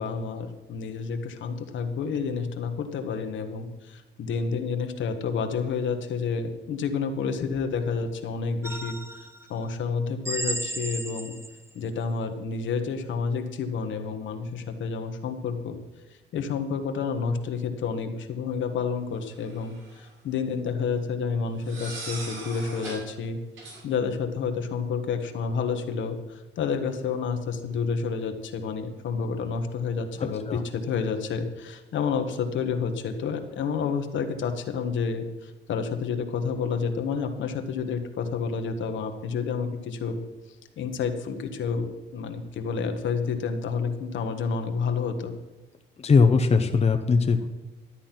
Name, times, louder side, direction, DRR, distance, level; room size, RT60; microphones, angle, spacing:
voice 1, 0.0-11.3 11.7-15.8 16.3-23.4 23.8-40.2 40.8-41.9 42.1-45.3, left 5 dB, 70° left, 6 dB, 1.4 m, -29 dB
sound 1, 8.6-9.4 10.2-11.7, right 1 dB, 15° right, 1.1 m, -34 dB
sound 2, 19.4-20.1 21.6-23.1 23.6-23.8, right 3 dB, 70° right, 4.0 m, -39 dB
voice 2, 46.0-47.5, left 4 dB, 30° left, 6 dB, 0.9 m, -20 dB
12.5 x 8.6 x 5.9 m, 1.1 s
cardioid pair, 90°, 20 cm